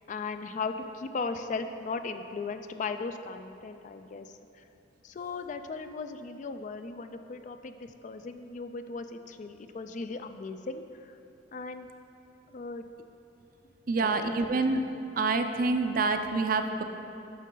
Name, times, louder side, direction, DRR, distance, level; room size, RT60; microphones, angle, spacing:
voice 1, 0.1-4.3 5.0-11.2 11.5-11.9 12.5-12.8 13.9-14.7, left 4 dB, 45° left, 8 dB, 0.3 m, -37 dB
voice 2, 13.9-14.8 15.2-16.8, right 3 dB, 50° right, 7 dB, 0.4 m, -27 dB
9.4 x 6.3 x 3.8 m, 2.8 s
head